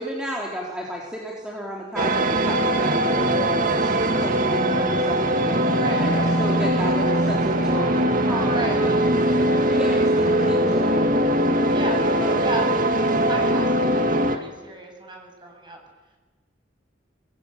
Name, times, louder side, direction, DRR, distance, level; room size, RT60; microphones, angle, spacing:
voice 1, 0.0-11.3 11.9-12.7 13.8-14.0, equal, 5° right, -3 dB, 3.6 m, -32 dB
sound 1, 2.0-14.4, right 1 dB, 45° right, 2.1 m, -21 dB
voice 2, 5.7-6.3 8.4-8.8 11.7-12.0 12.4-12.7 13.2-15.8, right 2 dB, 25° right, 2 dB, 7.5 m, -34 dB
27.5 x 21.5 x 9.2 m, 1.2 s
head